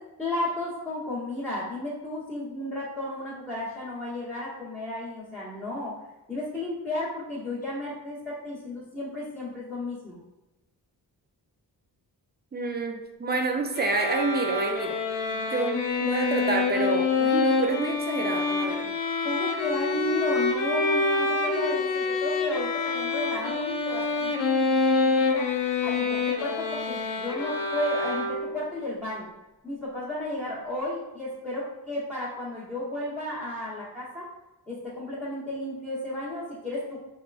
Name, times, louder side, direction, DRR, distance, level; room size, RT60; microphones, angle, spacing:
voice 1, 0.2-5.9 6.3-10.2 19.2-25.5 25.8-29.3 29.6-34.3 34.7-37.0, left 1 dB, 5° left, -10 dB, 0.9 m, -33 dB
voice 2, 12.5-15.0 15.4-18.9, right 3 dB, 25° right, 4 dB, 0.4 m, -28 dB
sound 1, 13.7-28.7, left 3 dB, 80° left, 0.5 m, -26 dB
2.9 x 2.3 x 2.4 m, 1.0 s
cardioid pair, 55°, 42 cm